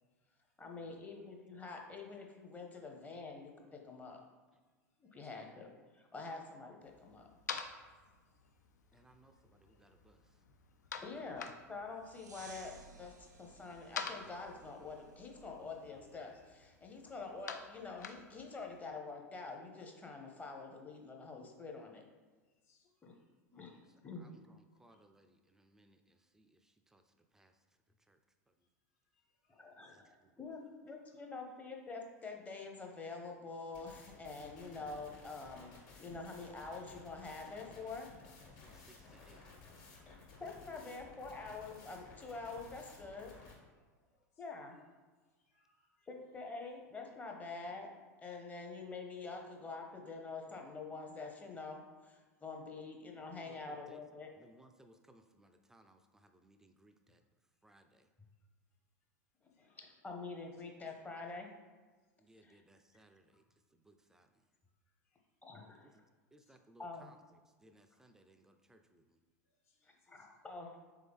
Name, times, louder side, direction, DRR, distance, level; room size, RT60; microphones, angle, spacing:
voice 1, 0.6-4.2 5.0-7.3 11.0-22.0 23.0-23.1 23.5-23.7 24.0-24.3 29.5-30.1 30.4-35.7 36.0-38.1 40.1-43.3 44.4-44.8 46.1-47.9 48.2-54.3 59.4-61.5 62.4-62.6 65.4-65.9 66.8-67.1 70.1-70.8, left 4 dB, 15° left, 1 dB, 0.7 m, -46 dB
sound 1, 6.8-18.8, left 6 dB, 85° left, 0.4 m, -49 dB
voice 2, 8.9-10.4 23.8-27.6 28.0-28.2 28.5-28.7 29.9-30.4 38.6-39.4 44.0-44.3 53.4-54.0 54.3-57.2 57.6-58.1 62.2-63.4 63.7-64.4 65.8-66.0 66.3-69.2, right 1 dB, 5° right, 7 dB, 0.3 m, -65 dB
sound 2, 12.0-16.5, right 4 dB, 90° right, 0.4 m, -59 dB
voice 3, 22.6-23.1 23.6-23.8 24.9-25.0 29.4-30.2 30.8-30.9 44.4-44.5 45.5-46.1 52.7-52.8 59.9-60.1 69.7-70.2, left 5 dB, 65° left, -1 dB, 1.1 m, -74 dB
sound 3, 33.7-43.5, left 4 dB, 50° left, 1.4 m, -56 dB
3.7 x 3.5 x 3.5 m, 1.3 s
hypercardioid pair, 90°, 9 cm